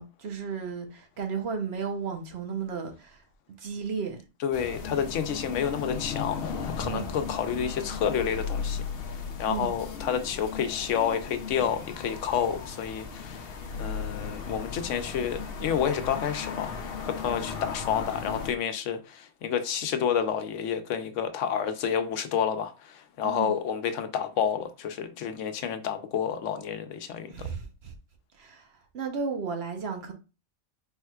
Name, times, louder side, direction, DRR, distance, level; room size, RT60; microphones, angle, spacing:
voice 1, 0.0-3.2 3.6-4.2 6.8-7.1 9.5-9.7 23.2-23.5 27.3-27.9 28.4-30.1, right 5 dB, 60° right, 1.0 m, -34 dB
voice 2, 4.4-8.8 9.1-13.5 13.8-27.5, left 8 dB, 80° left, 1.0 m, -30 dB
sound 1, 4.5-18.5, left 5 dB, 60° left, 0.8 m, -36 dB
4.4 x 3.6 x 2.3 m
omnidirectional pair, 1.2 m